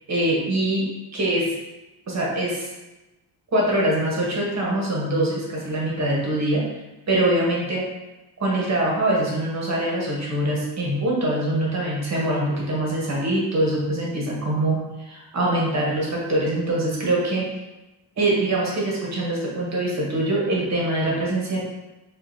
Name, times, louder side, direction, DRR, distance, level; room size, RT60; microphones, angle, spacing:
voice 1, 0.1-0.8 1.1-1.5 2.1-2.7 3.5-6.6 7.1-7.8 8.4-17.5 18.2-21.6, right 1 dB, 35° right, -4 dB, 1.2 m, -23 dB
5.1 x 2.7 x 2.7 m, 1.0 s
cardioid pair, 130°, 44 cm